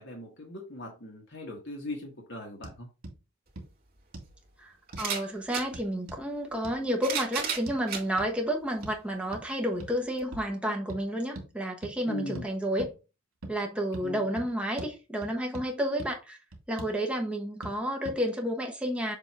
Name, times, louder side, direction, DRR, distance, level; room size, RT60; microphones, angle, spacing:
voice 1, 0.0-2.9 12.1-12.4 14.0-14.2, left 1 dB, 55° left, 1.4 m, -39 dB
sound 1, 2.6-2.8 3.0-3.2 3.6-3.7 4.1-4.3 4.9-5.1 5.7-6.2 6.6-6.8 7.7-7.8 8.2-8.3 8.8-9.0 9.3-9.5 9.8-10.0 10.3-10.5 10.9-11.0 11.3-11.5 11.8-12.0 12.3-12.5 12.8-12.9 13.4-13.6 13.9-14.1 14.4-14.5 14.8-14.9 15.2-15.7 16.0-16.1 16.5-17.0 17.6-17.8 18.0-18.2, right 1 dB, 85° right, 2.1 m, -42 dB
sound 2, 3.5-3.6 4.9-5.7 6.7-8.1 8.8-8.9 10.2-10.3, right 6 dB, 40° right, 2.0 m, -33 dB
voice 2, 4.6-12.9 13.5-16.4 16.7-19.2, equal, 5° right, 1.1 m, -31 dB
7.0 x 2.9 x 4.7 m
head